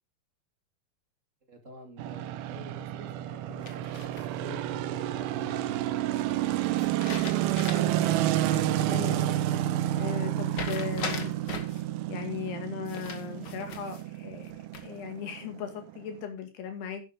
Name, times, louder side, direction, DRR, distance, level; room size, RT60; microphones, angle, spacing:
voice 1, 1.5-7.0, equal, 25° right, 4 dB, 1.7 m, -48 dB
sound 1, 2.0-16.2, right 13 dB, 80° right, 2.8 m, -30 dB
sound 2, 3.7-4.6 6.8-8.0 8.4-8.5 10.5-11.8 12.9-14.0 14.5-15.1, left 5 dB, 70° left, 1.0 m, -39 dB
voice 2, 7.7-8.3 8.8-9.3 9.9-11.3 12.1-14.5 14.8-17.0, left 8 dB, 85° left, 6 dB, 4.2 m, -38 dB
11.0 x 9.9 x 3.7 m, 0.27 s
omnidirectional pair, 4.5 m